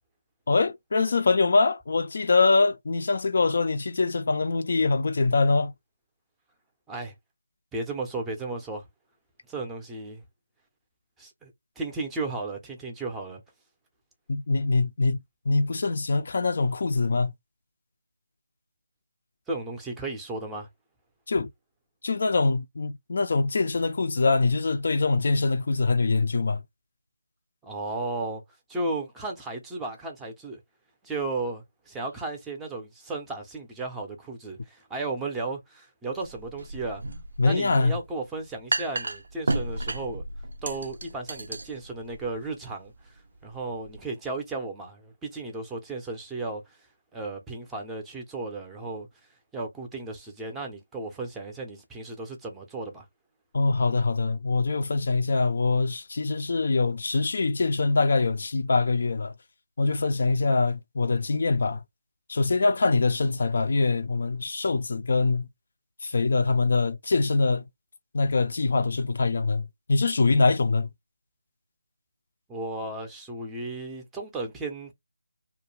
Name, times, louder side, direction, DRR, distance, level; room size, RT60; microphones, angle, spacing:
voice 1, 0.5-5.7 14.3-15.2 15.5-17.3 21.3-21.5 22.0-26.6 37.4-38.0 53.5-59.3 59.8-61.8 62.3-65.5 66.0-67.7 68.1-70.9, left 3 dB, 50° left, 0.3 m, -24 dB
voice 2, 7.7-8.9 9.5-10.2 11.2-13.4 19.5-20.7 27.6-28.4 28.7-30.6 31.0-37.0 37.4-40.2 40.6-46.8 47.1-49.1 49.5-53.1 72.5-74.9, right 3 dB, 5° right, 0.5 m, -34 dB
sound 1, 36.2-44.0, right 2 dB, 65° right, 0.4 m, -34 dB
2.3 x 2.1 x 3.0 m
figure-of-eight pair, 165°, 0 cm